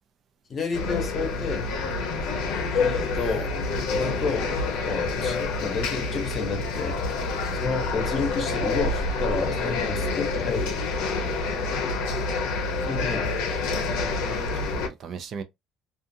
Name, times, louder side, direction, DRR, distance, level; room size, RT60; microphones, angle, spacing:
voice 1, 0.5-1.7 2.7-3.5 3.9-4.5 4.8-7.0 7.5-10.8 12.8-13.3, left 5 dB, 35° left, 1.0 m, -31 dB
sound 1, 0.7-14.9, left 3 dB, 75° left, 0.7 m, -27 dB
voice 2, 13.9-15.4, right 6 dB, 45° right, 0.4 m, -40 dB
2.5 x 2.5 x 2.6 m
cardioid pair, 135°, 0 cm